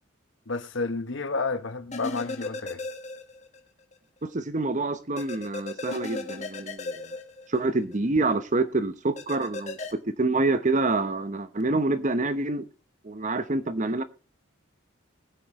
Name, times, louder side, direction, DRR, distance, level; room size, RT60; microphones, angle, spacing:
voice 1, 0.5-2.8, left 3 dB, 70° left, 1.1 m, -30 dB
sound 1, 1.9-3.6 3.9-4.0 5.2-8.0 9.2-9.9, left 3 dB, 35° left, 1.4 m, -36 dB
voice 2, 4.2-7.1 7.5-12.7 13.0-14.0, right 2 dB, 40° right, 0.9 m, -27 dB
20.5 x 8.5 x 3.0 m
head